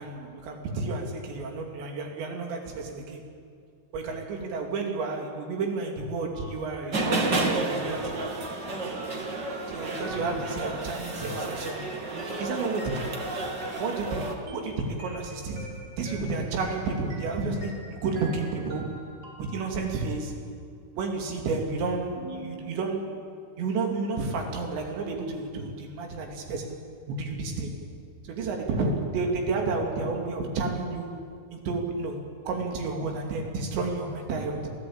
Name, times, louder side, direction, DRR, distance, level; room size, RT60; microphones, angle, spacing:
voice 1, 0.0-3.2 3.9-8.2 9.7-11.9 12.4-13.2 13.8-19.0 19.4-20.4 21.0-23.2 23.6-26.8 27.1-27.7 28.2-31.2 31.5-34.7, right 3 dB, 75° right, 2 dB, 4.7 m, -31 dB
sound 1, 6.3-13.9 14.5-20.1 22.2-23.0, right 1 dB, 20° right, 4.3 m, -45 dB
sound 2, 6.9-14.3, right 2 dB, 40° right, 1.8 m, -31 dB
27.0 x 16.5 x 8.6 m, 2.3 s
omnidirectional pair, 5.2 m